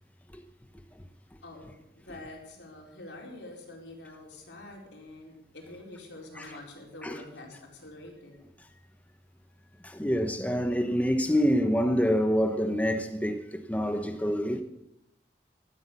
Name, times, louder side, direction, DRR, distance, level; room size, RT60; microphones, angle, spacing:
voice 1, 1.4-8.5, left 2 dB, 90° left, 4.3 m, -46 dB
voice 2, 9.8-14.6, equal, 10° left, 0.9 m, -27 dB
13.5 x 12.5 x 7.1 m
head